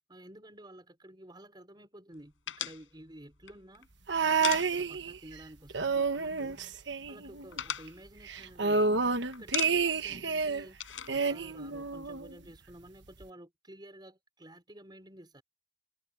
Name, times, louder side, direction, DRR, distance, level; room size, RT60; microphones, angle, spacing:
voice 1, 0.1-3.9 4.2-6.6 7.1-10.8 11.1-15.4, right 1 dB, 20° right, 5.1 m, -52 dB
sound 1, 2.5-5.3 5.5-5.7 6.0-6.7 7.0-9.0 9.3-10.1 10.3-12.2, left 10 dB, 80° left, 7.8 m, -39 dB
sound 2, 4.1-5.4 5.7-7.6 7.9-8.0 8.3-10.7 11.1-12.3 13.2-13.3, right 4 dB, 65° right, 1.2 m, -30 dB
head